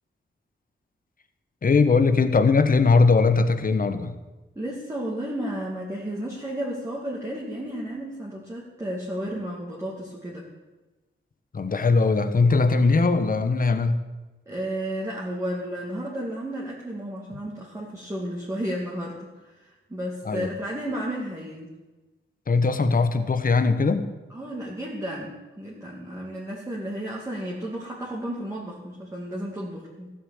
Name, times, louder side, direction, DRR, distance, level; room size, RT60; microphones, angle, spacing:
voice 1, 1.6-4.2 11.5-14.0 20.3-20.5 22.5-24.1, left 4 dB, 45° left, 9 dB, 1.1 m, -20 dB
voice 2, 4.5-10.5 14.5-21.7 24.3-30.1, right 1 dB, 15° right, -5 dB, 2.4 m, -33 dB
15.0 x 7.6 x 8.8 m, 1.2 s
wide cardioid pair, 125°, 21 cm